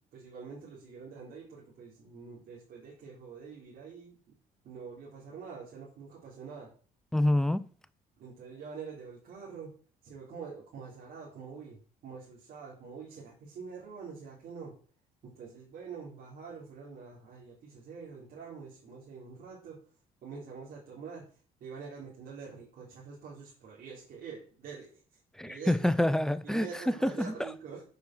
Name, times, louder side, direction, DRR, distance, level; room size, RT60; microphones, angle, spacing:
voice 1, 0.1-4.1 4.6-6.7 8.2-9.7 10.0-14.7 15.2-19.8 20.2-21.2 21.6-25.0 25.4-25.9 26.4-27.8, right 5 dB, 70° right, 3.9 m, -45 dB
voice 2, 7.1-7.6 25.4-27.3, left 1 dB, 5° left, 0.6 m, -27 dB
7.1 x 6.3 x 6.2 m
cardioid pair, 80°, 16 cm